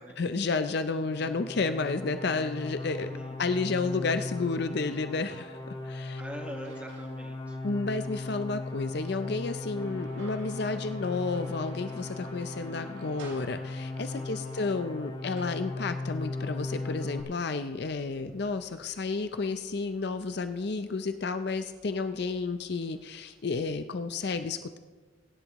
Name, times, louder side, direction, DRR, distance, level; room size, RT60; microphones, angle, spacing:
voice 1, 0.2-3.1 3.4-6.2 7.6-24.8, left 4 dB, 55° left, 9 dB, 0.5 m, -31 dB
sound 1, 1.0-17.2, left 2 dB, 25° left, 1.5 m, -38 dB
voice 2, 2.8-3.4 6.2-7.6 14.1-14.7, right 1 dB, 5° right, 1 dB, 1.6 m, -44 dB
sound 2, 5.7-7.2 7.6-11.7 12.1-12.2 12.6-14.0 14.7-23.4, right 2 dB, 75° right, 3.7 m, -57 dB
sound 3, 9.8-15.8, right 1 dB, 50° right, 3.2 m, -52 dB
23.0 x 11.0 x 3.0 m, 1.4 s
head